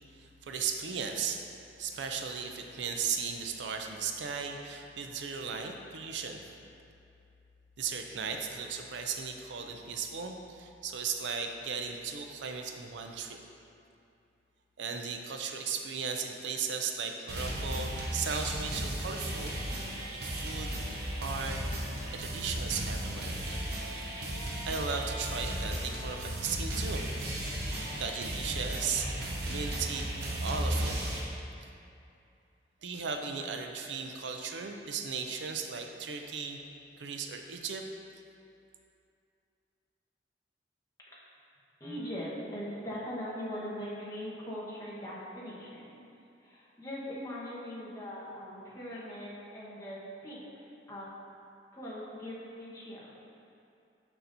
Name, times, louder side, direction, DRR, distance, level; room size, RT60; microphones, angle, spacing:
voice 1, 0.1-1.4 1.8-6.4 7.8-13.4 14.8-19.8 20.1-20.8 21.2-21.6 22.1-23.4 24.7-27.1 28.0-29.1 29.5-30.1 30.4-31.0 31.6-31.7 32.8-36.6 37.0-37.8, right 5 dB, 80° right, 4 dB, 0.5 m, -36 dB
sound 1, 17.3-31.2, right 1 dB, 65° right, 0.9 m, -35 dB
voice 2, 41.8-46.0 46.4-50.4 50.9-51.1 51.7-53.1, equal, 20° left, -7 dB, 1.2 m, -40 dB
6.8 x 5.7 x 2.6 m, 2.6 s
head